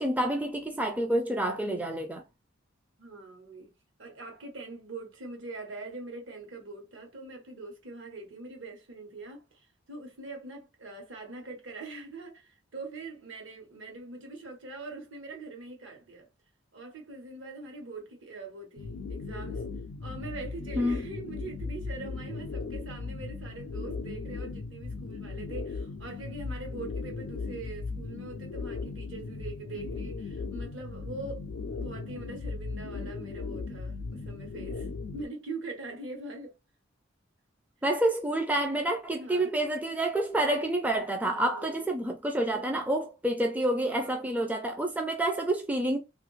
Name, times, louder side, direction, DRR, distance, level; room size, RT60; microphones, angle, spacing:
voice 1, 0.0-2.2 20.8-21.0 37.8-46.0, right 1 dB, 10° right, 0.4 m, -28 dB
voice 2, 3.0-3.7 4.0-16.3 16.7-19.7 20.0-31.5 31.8-36.5 39.2-39.6 41.2-41.8 43.8-44.3, right 3 dB, 70° right, 1.1 m, -43 dB
sound 1, 18.8-35.3, left 4 dB, 80° left, 0.4 m, -37 dB
2.6 x 2.4 x 3.1 m
head